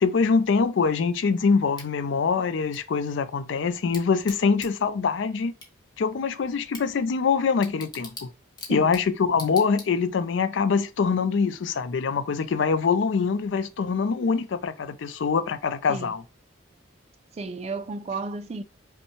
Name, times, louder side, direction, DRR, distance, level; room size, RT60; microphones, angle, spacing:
voice 1, 0.0-5.5 6.0-8.3 8.7-16.2, left 5 dB, 65° left, 0.4 m, -24 dB
Bicycle / Tick, 1.7-10.3, left 3 dB, 20° left, 0.9 m, -46 dB
voice 2, 17.3-18.6, right 3 dB, 30° right, 0.3 m, -33 dB
5.4 x 2.2 x 2.9 m
head